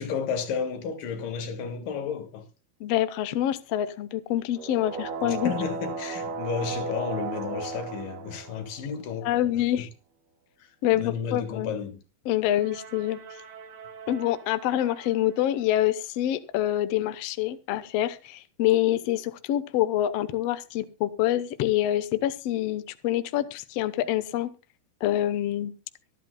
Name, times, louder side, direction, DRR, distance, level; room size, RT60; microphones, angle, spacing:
voice 1, 0.0-2.4 5.2-9.5 9.8-9.9 10.9-12.0, left 6 dB, 65° left, 3.2 m, -32 dB
voice 2, 2.8-5.5 9.2-9.9 10.8-11.7 12.2-13.2 14.1-24.5 25.0-25.7, left 13 dB, 90° left, 1.4 m, -26 dB
sound 1, 4.5-9.1 12.5-15.4, right 5 dB, 70° right, 3.2 m, -37 dB
24.0 x 8.6 x 2.2 m
omnidirectional pair, 4.2 m